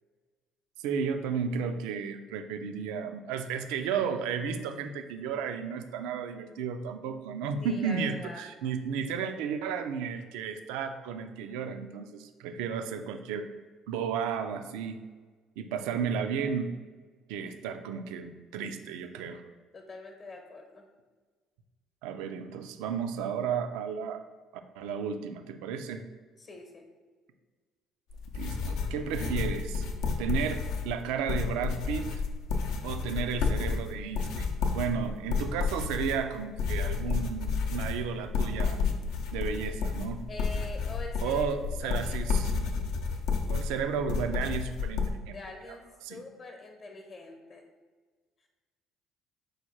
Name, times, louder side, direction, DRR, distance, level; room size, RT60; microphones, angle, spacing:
voice 1, 0.8-13.5 13.9-15.0 15.6-16.7 17.3-19.4 22.0-24.2 24.8-26.0 28.3-29.9 30.2-32.2 32.8-38.8 39.3-40.2 41.2-42.7 43.5-45.4 46.0-46.2, right 6 dB, 85° right, 8 dB, 0.3 m, -33 dB
voice 2, 7.6-8.4 19.7-20.8 26.4-26.8 40.3-41.5 41.8-42.1 45.3-47.6, left 2 dB, 40° left, 3 dB, 0.8 m, -44 dB
sound 1, 28.1-45.1, left 5 dB, 80° left, 0.5 m, -31 dB
4.7 x 2.3 x 4.4 m, 1.4 s
supercardioid pair, 95°, 0 cm